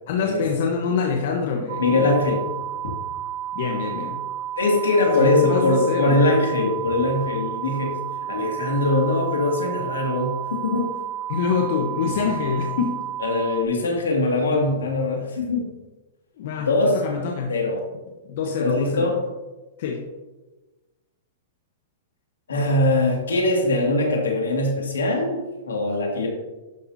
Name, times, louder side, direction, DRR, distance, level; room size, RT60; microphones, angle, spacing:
voice 1, 0.1-1.8 3.5-4.2 5.1-6.2 11.3-12.9 16.4-17.5 18.2-19.1 19.8-20.0, left 6 dB, 60° left, 1 dB, 1.1 m, -25 dB
sound 1, 1.7-13.6, right 11 dB, 55° right, 1.1 m, -31 dB
voice 2, 1.8-2.4 4.6-7.9 8.3-10.9 13.2-15.7 16.6-16.9 17.5-17.8 18.6-19.2 22.5-26.3, left 2 dB, 85° left, 0 dB, 2.2 m, -22 dB
11.5 x 5.9 x 2.8 m, 1.1 s
hypercardioid pair, 120°, 0 cm